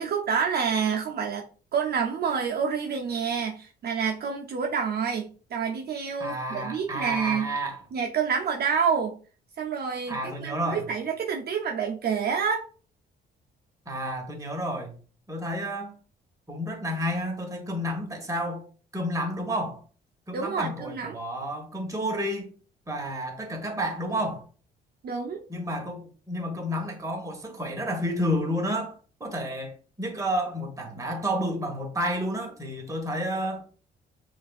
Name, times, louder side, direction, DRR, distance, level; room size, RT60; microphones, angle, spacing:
voice 1, 0.0-1.5 1.7-7.5 7.9-9.2 9.6-12.6 20.3-21.2 25.0-25.4, right 6 dB, 55° right, 0.6 m, -28 dB
voice 2, 6.2-7.8 10.1-10.9 13.9-14.9 15.3-15.9 16.5-18.7 18.9-19.8 20.3-22.5 22.9-24.4 25.5-28.9 29.2-33.6, equal, 15° right, 1.3 m, -30 dB
6.3 x 2.5 x 2.4 m
cardioid pair, 90°, 20 cm